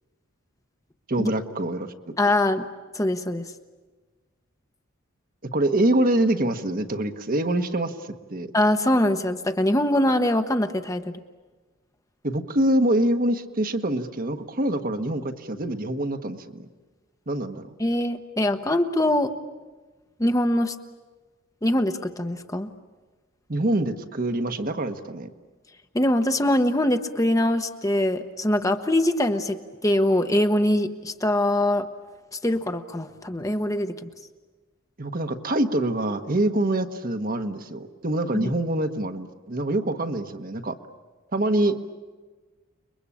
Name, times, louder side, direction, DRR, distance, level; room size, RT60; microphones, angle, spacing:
voice 1, 1.1-2.1 5.5-8.0 8.3-8.5 12.2-16.7 17.3-17.7 23.5-25.3 35.0-40.8 41.3-41.8, right 1 dB, 45° right, 7 dB, 1.3 m, -25 dB
voice 2, 2.2-2.6 2.9-3.5 8.5-11.2 17.8-19.3 20.2-20.7 21.6-22.7 25.9-31.9 32.3-34.1 38.3-38.5, left 1 dB, 15° left, 7 dB, 1.0 m, -23 dB
30.0 x 22.0 x 8.6 m, 1.3 s
head